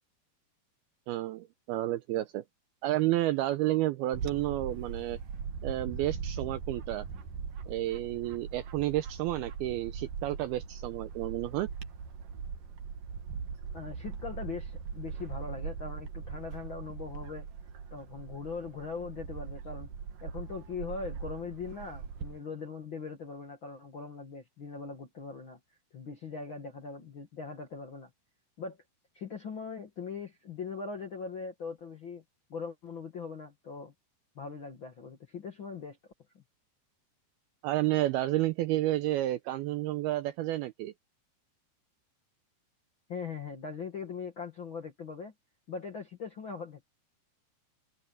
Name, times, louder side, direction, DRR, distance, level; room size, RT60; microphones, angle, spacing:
voice 1, 1.1-2.4 2.8-5.2 5.6-7.1 7.7-11.7 37.6-40.9, right 15 dB, 90° right, 2.2 m, -31 dB
Bird / Wind, 4.1-22.4, right 6 dB, 55° right, 3.1 m, -40 dB
voice 2, 13.7-17.5 17.9-19.9 20.2-25.6 25.9-28.1 28.6-28.8 29.1-32.2 32.5-33.9 34.3-36.0 43.1-45.3 45.7-46.9, left 5 dB, 55° left, 1.4 m, -40 dB
omnidirectional pair, 5.1 m